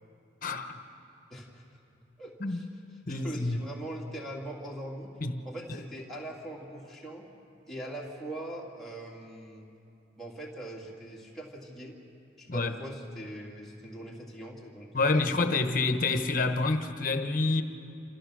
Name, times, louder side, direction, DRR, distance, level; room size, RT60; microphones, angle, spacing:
voice 1, 0.4-0.8 2.4-2.7 3.1-3.6 5.2-5.8 12.5-12.7 14.9-17.6, left 3 dB, 50° left, 1.1 m, -28 dB
voice 2, 1.3-1.6 2.2-2.6 3.1-5.1 5.4-7.2 7.7-9.7 10.2-12.0 12.4-15.8, right 1 dB, ahead, 2.5 m, -41 dB
27.5 x 14.5 x 6.4 m
head